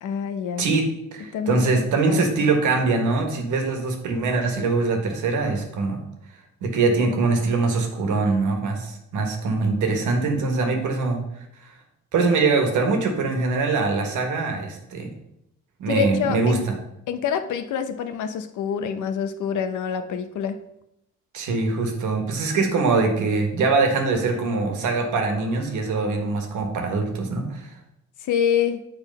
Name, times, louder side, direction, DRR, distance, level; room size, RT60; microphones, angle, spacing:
voice 1, 0.0-0.7 1.3-2.3 15.9-16.6 17.1-20.6 28.2-28.8, left 7 dB, 80° left, 9 dB, 0.8 m, -26 dB
voice 2, 0.6-6.0 6.6-11.7 12.1-15.1 15.8-16.6 21.3-27.7, right 3 dB, 80° right, 4 dB, 1.5 m, -23 dB
7.9 x 4.3 x 5.4 m, 0.82 s
cardioid pair, 90°, 30 cm